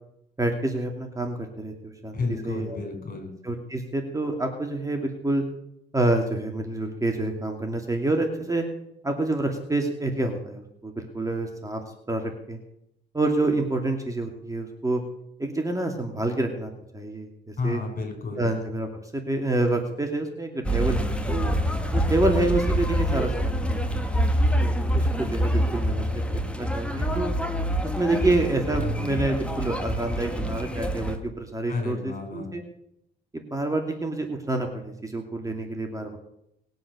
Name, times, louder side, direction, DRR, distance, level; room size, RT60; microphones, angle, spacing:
voice 1, 0.4-2.2 2.4-2.8 3.4-5.4 5.9-8.6 9.0-11.8 12.1-12.6 13.1-15.0 15.4-17.8 18.4-21.5 21.9-24.2 24.6-26.2 26.6-27.3 27.8-32.6 33.3-36.2, right 2 dB, 15° right, 3 dB, 2.6 m, -28 dB
voice 2, 2.1-3.3 17.6-18.4 31.7-32.5, left 3 dB, 45° left, 5 dB, 6.1 m, -31 dB
sound 1, 20.6-31.2, equal, 5° left, 2.0 m, -26 dB
20.5 x 8.0 x 6.9 m, 0.77 s
cardioid pair, 90°, 20 cm